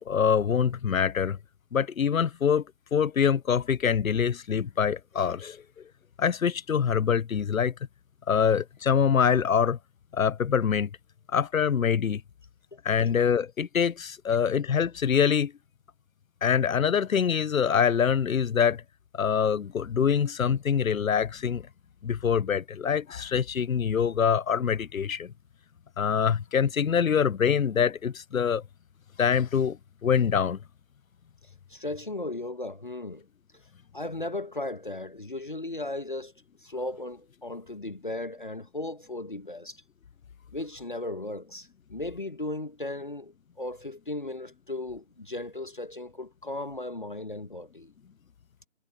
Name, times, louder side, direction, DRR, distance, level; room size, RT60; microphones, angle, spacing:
voice 1, 0.0-1.4 1.7-2.6 2.9-5.6 6.2-7.7 8.3-9.8 10.1-10.9 11.3-12.2 12.8-15.5 16.4-18.8 19.1-21.6 22.0-25.3 26.0-28.6 29.2-29.8 30.0-30.6, left 7 dB, 80° left, 0.6 m, -24 dB
voice 2, 31.7-33.2 33.9-36.3 36.6-39.8 40.5-47.9, left 2 dB, 35° left, 1.1 m, -36 dB
figure-of-eight pair, 170°, 41 cm